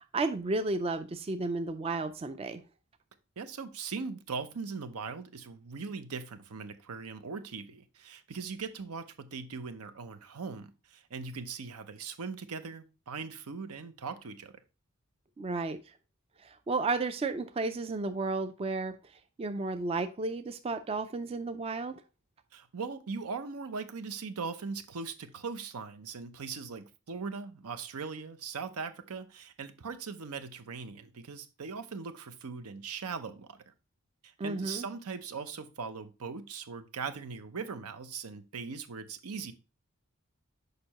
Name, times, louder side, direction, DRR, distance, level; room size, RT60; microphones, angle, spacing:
voice 1, 0.0-2.6 15.4-15.8 16.4-19.0 19.4-22.0 34.4-34.8, right 3 dB, 25° right, 0.3 m, -33 dB
voice 2, 3.4-14.6 22.5-33.7 34.2-39.5, right 5 dB, 80° right, 0.7 m, -40 dB
6.7 x 5.3 x 2.9 m
head